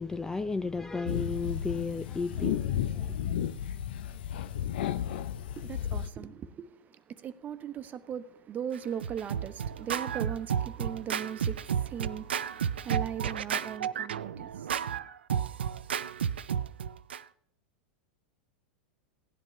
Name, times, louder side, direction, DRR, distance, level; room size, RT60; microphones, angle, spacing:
voice 1, 0.0-3.3, left 4 dB, 10° left, 0.4 m, -34 dB
sound 1, 1.1-6.1, left 10 dB, 70° left, 0.7 m, -33 dB
voice 2, 5.5-15.1, right 8 dB, 30° right, 1.0 m, -39 dB
Scratching (performance technique), 8.7-17.2, right 8 dB, 90° right, 0.5 m, -32 dB
17.0 x 10.5 x 3.2 m
hypercardioid pair, 110°, 6 cm